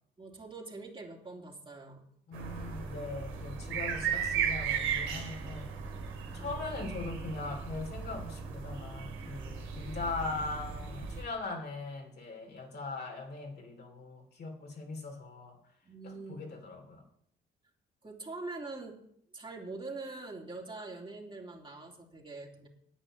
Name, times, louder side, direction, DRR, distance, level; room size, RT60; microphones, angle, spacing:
voice 1, 0.2-2.0 6.4-6.7 15.8-16.5 18.0-19.0 19.3-22.7, right 3 dB, 25° right, -1 dB, 3.3 m, -44 dB
voice 2, 2.3-5.7 6.3-15.6 16.0-17.0, left 3 dB, 55° left, 2 dB, 2.9 m, -40 dB
sound 1, 2.3-11.2, right 7 dB, 90° right, 2.7 m, -36 dB
10.0 x 9.0 x 7.5 m, 0.69 s
cardioid pair, 90°, 20 cm